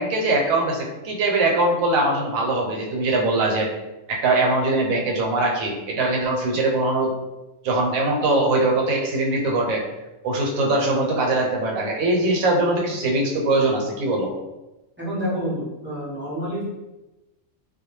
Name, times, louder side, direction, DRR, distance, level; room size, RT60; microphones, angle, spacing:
voice 1, 0.0-3.7 4.1-7.1 7.6-9.8 10.2-14.3, right 2 dB, 80° right, 0 dB, 1.0 m, -21 dB
voice 2, 15.0-16.6, equal, 15° right, -9 dB, 0.5 m, -28 dB
2.3 x 2.2 x 3.0 m, 1.0 s
omnidirectional pair, 1.4 m